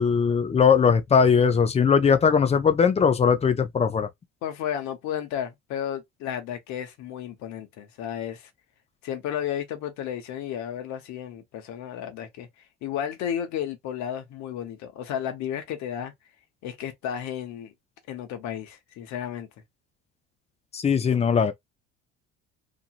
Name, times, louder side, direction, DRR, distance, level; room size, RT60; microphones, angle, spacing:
voice 1, 0.0-4.1 20.7-21.5, left 6 dB, 20° left, 0.5 m, -20 dB
voice 2, 4.4-8.5 9.0-12.5 12.8-16.1 16.6-17.7 18.1-19.5, left 9 dB, 65° left, 1.0 m, -33 dB
2.9 x 2.6 x 2.4 m
cardioid pair, 120°, 30 cm